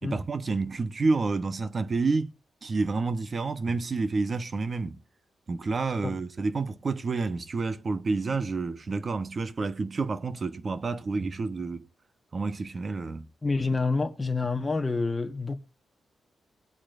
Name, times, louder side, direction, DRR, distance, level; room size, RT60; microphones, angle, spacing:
voice 1, 0.0-2.3 2.6-5.0 5.5-11.8 12.3-13.2, right 3 dB, 40° right, 1.0 m, -29 dB
voice 2, 13.4-15.5, left 3 dB, 20° left, 1.3 m, -28 dB
20.5 x 8.6 x 2.6 m
cardioid pair, 115°, 0 cm